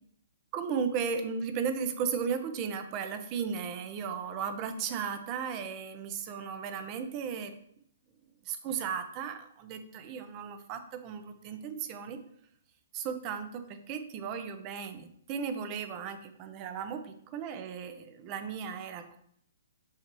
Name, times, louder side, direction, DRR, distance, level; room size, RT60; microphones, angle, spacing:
voice 1, 0.5-7.5 8.4-12.2 12.9-19.2, right 6 dB, 30° right, 8 dB, 0.7 m, -35 dB
6.5 x 5.7 x 3.0 m, 0.67 s
hypercardioid pair, 145°, 0 cm